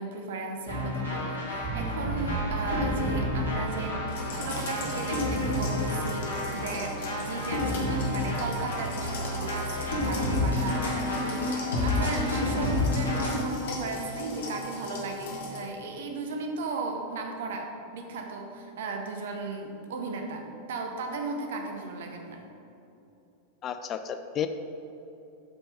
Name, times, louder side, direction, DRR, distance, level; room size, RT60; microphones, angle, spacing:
voice 1, 0.0-4.0 4.3-22.4, right 3 dB, 60° right, 3 dB, 0.8 m, -36 dB
sound 1, 0.7-13.4, left 2 dB, 70° left, 1.8 m, -30 dB
sound 2, 1.6-9.7, right 3 dB, 30° right, 1.4 m, -37 dB
sound 3, 4.1-15.6, left 2 dB, 55° left, 1.4 m, -39 dB
voice 2, 23.6-24.5, left 9 dB, 30° left, 9 dB, 0.4 m, -32 dB
8.2 x 4.6 x 5.0 m, 2.8 s
figure-of-eight pair, 90°, 0 cm